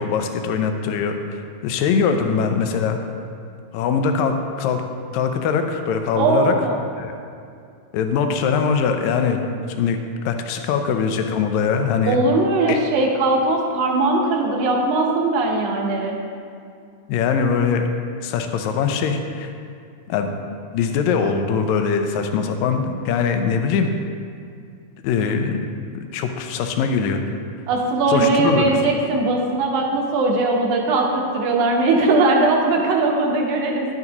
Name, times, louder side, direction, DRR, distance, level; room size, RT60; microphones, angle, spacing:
voice 1, 0.0-3.0 3.7-4.8 5.1-6.5 7.0-7.1 7.9-9.5 9.8-10.0 10.3-12.2 12.7-12.8 17.1-17.9 18.2-19.5 20.1-20.3 20.7-23.9 25.0-25.6 26.1-27.2 28.1-28.7, left 6 dB, 80° left, 6 dB, 1.7 m, -22 dB
voice 2, 6.2-6.8 12.1-16.2 27.7-33.9, right 2 dB, 70° right, 1 dB, 2.3 m, -19 dB
10.5 x 8.2 x 2.9 m, 2.4 s
omnidirectional pair, 3.8 m